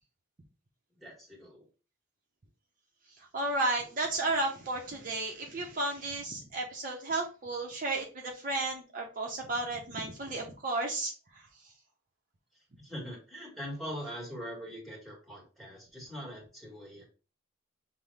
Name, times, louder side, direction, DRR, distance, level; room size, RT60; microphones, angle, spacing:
voice 1, 0.9-1.7 12.5-17.1, equal, ahead, -2 dB, 1.3 m, -42 dB
voice 2, 3.2-11.5, right 2 dB, 45° right, 1 dB, 0.6 m, -33 dB
5.5 x 2.1 x 3.2 m, 0.35 s
head